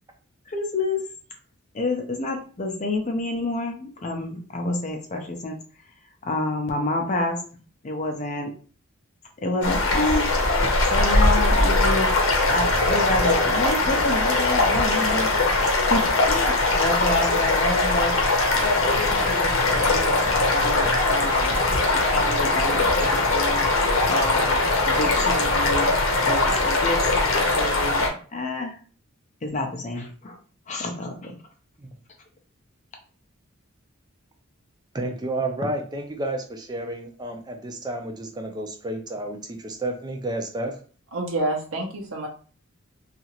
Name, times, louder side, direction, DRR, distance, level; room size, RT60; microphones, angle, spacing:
voice 1, 0.5-1.0 1.7-5.6 6.2-8.5 9.4-10.3 10.9-12.1 12.5-15.3 15.6-21.6 21.9-25.9 26.2-28.8 29.4-30.4 30.7-31.4, left 2 dB, 35° left, 3 dB, 0.5 m, -28 dB
sound 1, 9.6-28.1, left 2 dB, 70° left, 0.7 m, -21 dB
voice 2, 34.9-40.7, right 1 dB, 20° right, 4 dB, 0.4 m, -31 dB
voice 3, 41.1-42.3, right 1 dB, 75° right, 1 dB, 0.8 m, -27 dB
2.8 x 2.4 x 2.8 m, 0.40 s
head